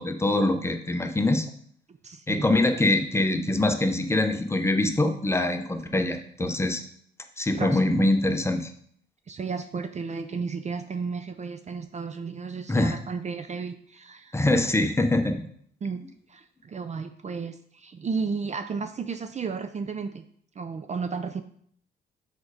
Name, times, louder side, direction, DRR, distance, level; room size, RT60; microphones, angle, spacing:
voice 1, 0.0-1.5 2.3-6.8 7.4-8.7 12.7-13.0 14.3-15.4, left 2 dB, 15° left, 6 dB, 0.9 m, -24 dB
voice 2, 2.0-2.5 6.5-6.6 7.5-7.8 9.3-14.4 15.8-16.0 16.3-20.3 20.6-21.4, right 5 dB, 35° right, 9 dB, 0.5 m, -33 dB
6.2 x 5.3 x 4.9 m, 0.63 s
cardioid pair, 90°, 20 cm